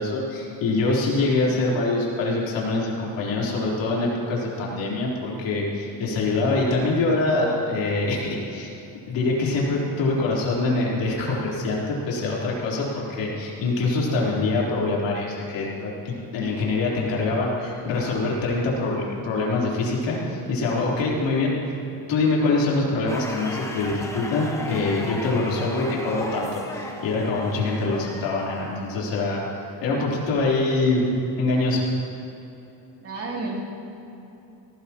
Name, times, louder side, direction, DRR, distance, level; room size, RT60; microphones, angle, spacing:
voice 1, 0.0-8.7 9.1-21.5 22.1-29.4 29.8-31.1 31.4-31.8, left 3 dB, 75° left, -4 dB, 3.8 m, -24 dB
sound 1, 23.1-29.2, left 1 dB, 5° left, 0.9 m, -37 dB
voice 2, 33.0-33.6, right 3 dB, 30° right, -3 dB, 2.9 m, -31 dB
18.0 x 15.5 x 3.0 m, 3.0 s
cardioid pair, 150°, 44 cm